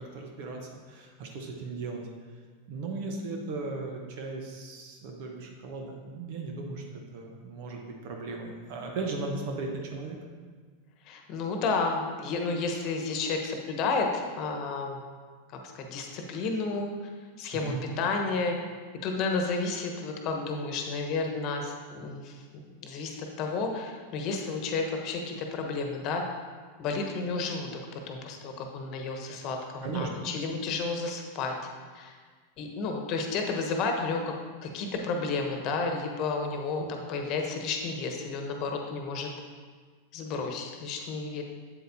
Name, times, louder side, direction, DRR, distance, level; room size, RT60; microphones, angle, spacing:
voice 1, 0.0-2.0 2.7-6.8 7.1-10.2 17.5-18.0 29.8-30.1 36.7-36.9, right 3 dB, 55° right, 2 dB, 1.0 m, -36 dB
voice 2, 11.1-15.0 15.7-16.9 17.4-18.6 19.0-26.2 26.8-31.5 31.9-32.2 32.6-34.3 34.6-39.3 40.1-41.4, left 4 dB, 45° left, 3 dB, 1.1 m, -31 dB
7.9 x 7.8 x 2.8 m, 1.5 s
hypercardioid pair, 90°, 0 cm